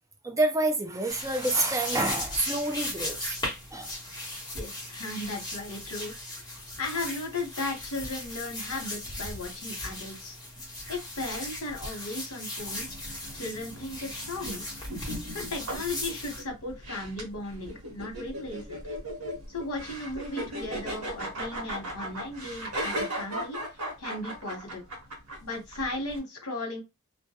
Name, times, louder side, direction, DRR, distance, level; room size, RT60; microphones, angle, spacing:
voice 1, 0.2-3.4 3.7-4.0, right 2 dB, 15° right, 0.4 m, -28 dB
sound 1, 1.1-16.4, left 1 dB, 20° left, 0.9 m, -37 dB
voice 2, 4.5-6.1 6.8-10.4 10.9-13.0 13.3-14.6 15.3-18.8 19.5-23.6 24.0-24.8 25.4-26.8, left 2 dB, 70° left, 0.9 m, -36 dB
sound 2, 12.6-26.2, right 1 dB, 70° right, 1.0 m, -37 dB
2.2 x 2.1 x 2.7 m
head